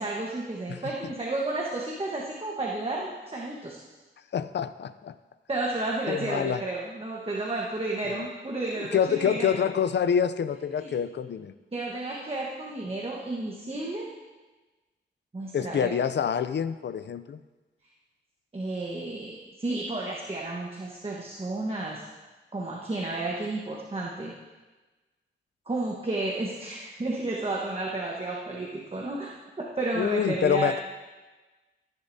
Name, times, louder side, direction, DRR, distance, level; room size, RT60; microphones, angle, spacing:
voice 1, 0.0-3.8 5.5-9.6 10.8-10.9 11.7-14.1 15.3-15.9 18.5-22.0 22.5-24.3 25.7-29.3 29.6-30.7, right 2 dB, 25° right, -3 dB, 1.3 m, -32 dB
voice 2, 4.3-5.1 6.1-6.6 8.0-8.3 8.8-11.5 15.5-17.4 30.0-30.8, left 8 dB, 55° left, 13 dB, 0.5 m, -27 dB
15.0 x 10.5 x 2.8 m, 1.2 s
wide cardioid pair, 100°, 21 cm